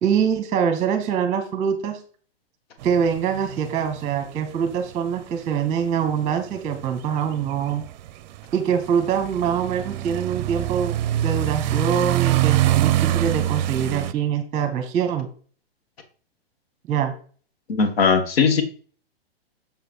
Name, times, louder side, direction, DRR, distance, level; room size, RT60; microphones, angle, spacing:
voice 1, 0.0-2.0 2.8-7.8 8.5-15.3 16.9-17.1, right 7 dB, 20° right, 6 dB, 1.2 m, -24 dB
sound 1, 2.8-14.1, right 14 dB, 45° right, 0.6 m, -25 dB
voice 2, 17.7-18.6, left 5 dB, 75° left, 6 dB, 1.6 m, -19 dB
7.1 x 5.1 x 4.6 m, 0.42 s
hypercardioid pair, 125°, 31 cm